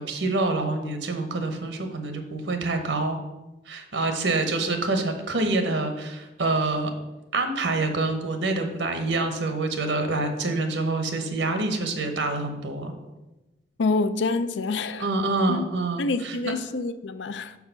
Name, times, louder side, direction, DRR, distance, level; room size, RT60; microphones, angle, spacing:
voice 1, 0.0-3.2 3.7-6.9 7.3-12.9 15.0-16.5, right 2 dB, 80° right, 6 dB, 1.0 m, -26 dB
voice 2, 13.8-15.1 15.5-15.7 16.0-17.6, left 3 dB, 80° left, 13 dB, 0.5 m, -27 dB
6.0 x 4.8 x 5.6 m, 1.0 s
head